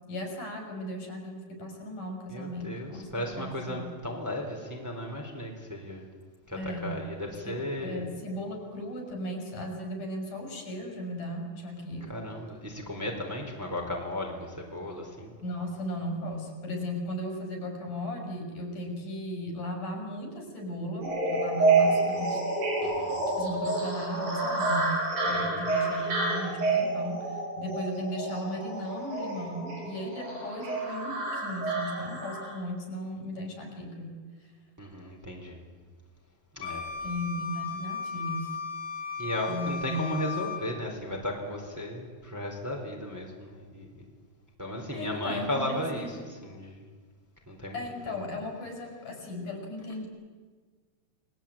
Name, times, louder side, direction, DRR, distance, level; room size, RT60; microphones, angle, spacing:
voice 1, 0.1-3.9 6.5-7.0 7.5-12.3 15.4-22.4 23.4-34.2 37.0-38.5 39.5-40.3 44.9-46.2 47.7-50.1, equal, 65° left, 3 dB, 6.7 m, -36 dB
voice 2, 2.3-6.1 6.5-8.0 12.1-15.3 22.8-23.2 25.3-25.6 34.8-35.6 36.5-36.9 39.2-44.1 44.6-46.8 47.5-47.8 48.1-48.2, left 1 dB, 5° right, 0 dB, 3.9 m, -35 dB
sound 1, 21.0-32.5, right 3 dB, 90° right, 9.2 m, -29 dB
Wind instrument woodwind instrument, 36.6-40.7, left 5 dB, 45° left, 3.2 m, -36 dB
29.0 x 21.0 x 8.9 m, 1.5 s
omnidirectional pair, 3.9 m